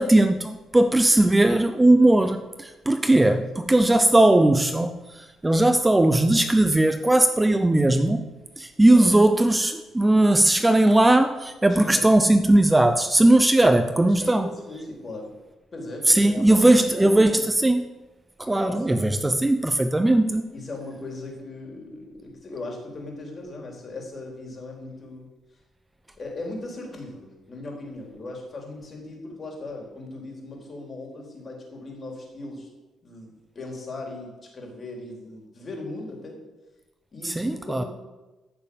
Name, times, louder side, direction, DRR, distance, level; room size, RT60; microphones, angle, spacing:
voice 1, 0.0-8.3 8.6-14.5 16.1-17.8 18.4-20.5 37.2-37.8, right 1 dB, 15° right, 9 dB, 0.7 m, -19 dB
voice 2, 3.0-3.8 8.9-9.1 11.7-12.1 14.0-15.3 15.7-17.4 18.5-19.3 20.5-25.3 26.2-32.7 33.0-36.4 37.1-37.9, left 2 dB, 40° left, 0 dB, 4.2 m, -38 dB
14.5 x 6.6 x 7.3 m, 1.1 s
cardioid pair, 90°, 0 cm